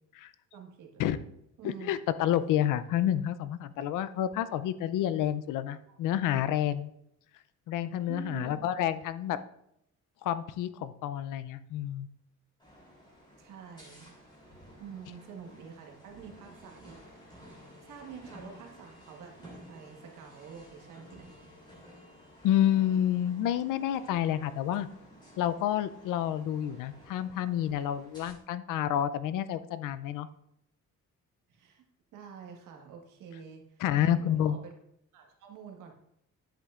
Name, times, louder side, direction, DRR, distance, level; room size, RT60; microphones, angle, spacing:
voice 1, 0.5-1.2 1.6-1.9 5.9-6.0 8.1-8.6 13.4-14.2 14.8-21.5 31.5-31.8 32.1-34.7 35.1-35.9, right 7 dB, 85° right, 2 dB, 1.6 m, -48 dB
voice 2, 1.6-6.9 7.7-9.4 10.2-12.1 22.4-24.9 25.4-30.3 33.8-34.6, left 11 dB, 85° left, 14 dB, 0.6 m, -29 dB
sound 1, 12.6-28.3, equal, 15° left, 3.2 m, -54 dB
10.0 x 8.1 x 2.5 m, 0.76 s
cardioid pair, 115°, 31 cm